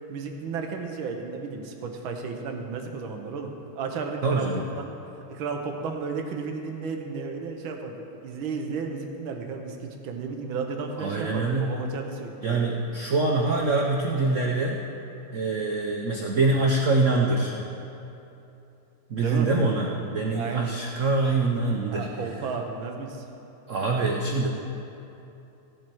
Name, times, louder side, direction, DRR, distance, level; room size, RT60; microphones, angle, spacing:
voice 1, 0.1-4.5 4.8-4.9 5.3-8.0 8.2-12.7 19.2-19.5 20.3-20.7 21.9-23.2, right 5 dB, 70° right, 3 dB, 1.7 m, -33 dB
voice 2, 4.2-4.6 11.0-11.6 12.4-14.8 15.3-17.5 19.1-22.1 23.7-24.5, right 3 dB, 85° right, 0 dB, 0.6 m, -24 dB
16.0 x 7.4 x 4.6 m, 2.9 s
omnidirectional pair, 2.4 m